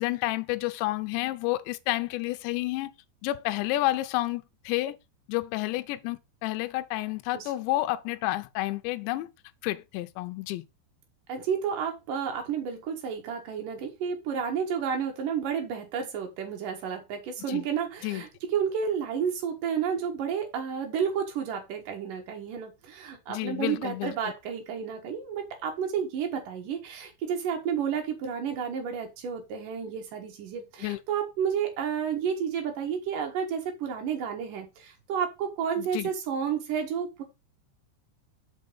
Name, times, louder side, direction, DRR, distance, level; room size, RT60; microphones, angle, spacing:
voice 1, 0.0-2.9 3.2-5.0 5.3-9.3 9.6-10.6 17.5-17.7 18.0-18.2 23.3-24.1 30.8-31.0 35.8-36.1, left 17 dB, 80° left, 2.7 m, -30 dB
voice 2, 11.3-37.2, right 7 dB, 60° right, 2.5 m, -31 dB
6.1 x 5.3 x 5.3 m
omnidirectional pair, 5.3 m